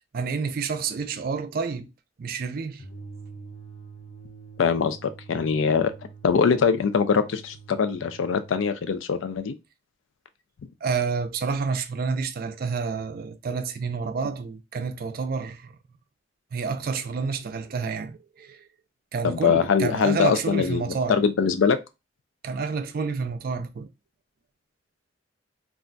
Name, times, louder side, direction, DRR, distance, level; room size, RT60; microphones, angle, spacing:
voice 1, 0.1-1.9 2.2-2.8 10.8-15.7 16.5-18.6 19.1-21.2 22.4-23.9, right 5 dB, 50° right, 0.4 m, -29 dB
sound 1, 2.8-8.8, right 5 dB, 40° left, 0.7 m, -45 dB
voice 2, 4.6-5.9 6.2-9.5 19.2-21.8, left 6 dB, 80° left, 0.4 m, -23 dB
2.4 x 2.2 x 3.8 m
head